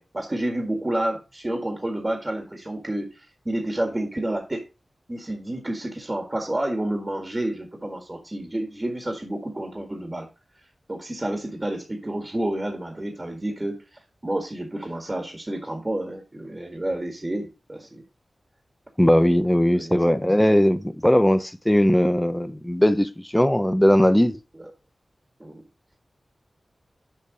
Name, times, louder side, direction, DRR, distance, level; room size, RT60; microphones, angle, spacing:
voice 1, 0.0-4.7 5.1-10.3 10.9-13.8 14.2-18.0 19.7-19.9 24.6-24.7 25.4-25.6, right 1 dB, 25° right, 1.8 m, -29 dB
voice 2, 19.0-24.4, equal, 10° left, 0.8 m, -19 dB
6.8 x 5.3 x 5.0 m
wide cardioid pair, 65°, 0 cm